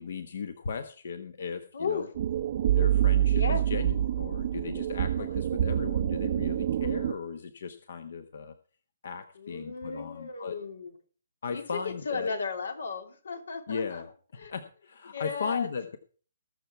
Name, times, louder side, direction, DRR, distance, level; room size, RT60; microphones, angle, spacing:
voice 1, 0.0-2.1 2.8-8.5 9.0-10.6 11.4-12.3 13.7-14.1 14.5-16.0, left 5 dB, 60° left, 10 dB, 1.2 m, -37 dB
voice 2, 1.7-2.0 3.3-3.6 5.2-5.3 9.3-10.9 11.5-14.0 14.4-14.5 15.1-15.7, left 5 dB, 90° left, 6 dB, 3.1 m, -35 dB
sound 1, 2.2-7.1, right 11 dB, 40° right, 0.6 m, -26 dB
20.0 x 6.8 x 4.5 m, 0.41 s
hypercardioid pair, 170°, 0 cm